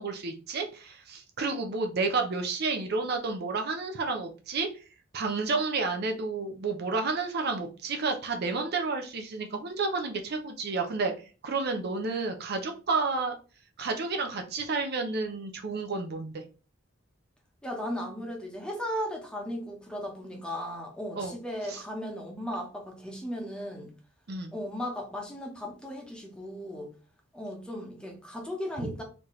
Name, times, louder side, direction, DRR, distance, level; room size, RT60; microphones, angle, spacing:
voice 1, 0.0-4.7 5.1-11.1 11.4-13.3 13.8-16.4 21.2-21.3 21.7-21.8 24.3-24.5, right 4 dB, 50° right, 0.6 m, -30 dB
voice 2, 17.6-23.9 24.5-26.9 27.3-29.0, equal, 5° left, 1.0 m, -36 dB
4.2 x 2.9 x 3.1 m
head